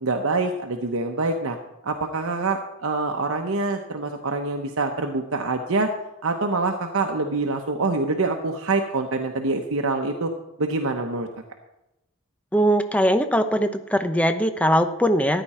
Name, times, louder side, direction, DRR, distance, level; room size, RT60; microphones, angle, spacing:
voice 1, 0.0-1.6 1.8-5.9 6.2-10.3 10.6-11.3, right 3 dB, 80° right, 4 dB, 0.9 m, -25 dB
voice 2, 12.5-15.4, equal, 5° left, 8 dB, 0.7 m, -21 dB
14.0 x 10.0 x 4.3 m, 0.92 s
head